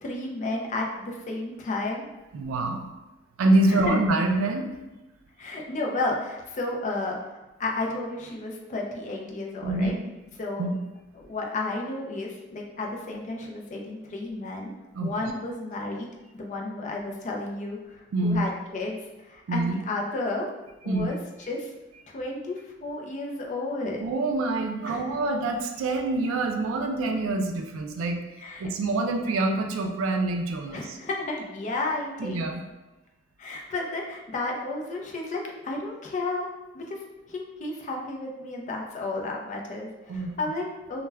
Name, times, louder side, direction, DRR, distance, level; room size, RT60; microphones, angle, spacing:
voice 1, 0.0-2.1 3.7-4.0 5.4-7.2 7.6-9.9 10.4-10.6 11.2-14.7 15.0-20.5 20.8-21.2 21.5-21.7 22.1-24.0 24.9-25.1 28.4-28.7 30.7-32.5 33.4-36.5 36.7-37.0 37.3-41.1, left 2 dB, 40° left, 0 dB, 0.4 m, -32 dB
voice 2, 2.3-2.9 3.4-4.7 9.6-10.0 10.6-10.8 14.9-15.1 18.1-18.5 19.5-19.8 20.9-21.1 24.0-28.2 28.6-31.0 32.2-32.6 40.1-40.4, right 2 dB, 85° right, 4 dB, 0.3 m, -26 dB
2.1 x 2.1 x 3.3 m, 1.1 s
head